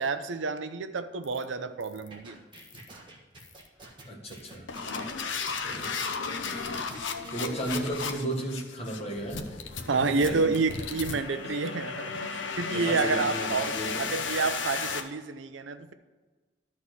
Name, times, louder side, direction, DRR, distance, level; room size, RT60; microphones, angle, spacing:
voice 1, 0.0-2.4 9.9-15.9, right 4 dB, 85° right, 10 dB, 0.6 m, -29 dB
sound 1, 1.2-1.4 1.8-2.1 2.5-2.9 3.4-3.7 4.3-15.0, left 5 dB, 80° left, 0.8 m, -34 dB
sound 2, 2.1-7.8, right 2 dB, 25° right, 1.4 m, -49 dB
voice 2, 4.1-4.7 5.6-6.0 7.3-9.6 9.9-10.5 12.2-12.3 12.6-14.2, right 1 dB, 35° left, 0 dB, 1.6 m, -34 dB
12.5 x 4.3 x 6.3 m, 1.3 s
head